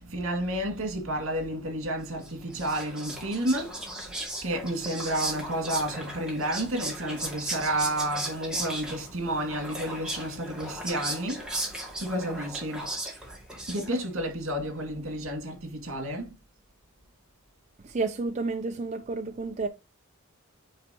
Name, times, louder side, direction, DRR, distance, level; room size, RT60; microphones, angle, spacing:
voice 1, 0.0-3.7 4.1-4.2 4.4-11.5 12.0-13.0 13.7-16.3, right 1 dB, 70° right, 2.2 m, -31 dB
Whispering, 2.2-14.2, right 1 dB, 5° right, 2.2 m, -36 dB
voice 2, 17.8-19.7, right 3 dB, 35° right, 0.5 m, -30 dB
8.8 x 4.5 x 2.9 m
head